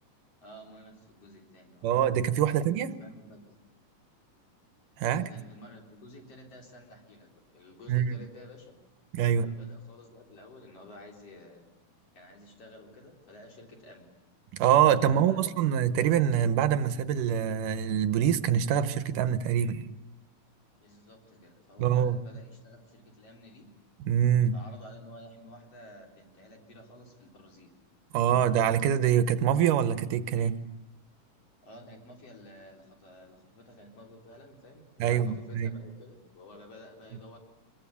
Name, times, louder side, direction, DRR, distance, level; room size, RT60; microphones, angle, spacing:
voice 1, 0.4-1.9 2.4-3.6 5.0-8.7 9.2-11.6 12.1-14.1 14.6-15.7 20.7-23.7 24.5-27.7 31.6-37.4, left 1 dB, 50° left, 5.0 m, -51 dB
voice 2, 1.8-3.0 5.0-5.3 7.9-8.2 9.1-9.5 14.5-19.9 21.8-22.2 24.0-24.5 28.1-30.6 35.0-35.7, right 9 dB, 85° right, 2.6 m, -25 dB
25.0 x 21.5 x 8.4 m
omnidirectional pair, 3.7 m